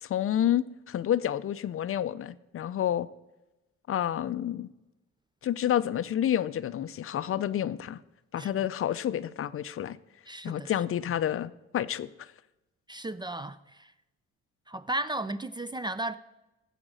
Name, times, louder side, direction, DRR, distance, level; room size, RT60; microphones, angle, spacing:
voice 1, 0.0-3.1 3.9-4.7 5.4-8.0 8.3-10.0 10.4-12.3, left 10 dB, 45° left, 0.5 m, -29 dB
voice 2, 10.3-10.7 12.9-13.9 14.7-16.1, right 1 dB, 15° right, 0.4 m, -35 dB
15.0 x 5.1 x 6.2 m
cardioid pair, 90°, 30 cm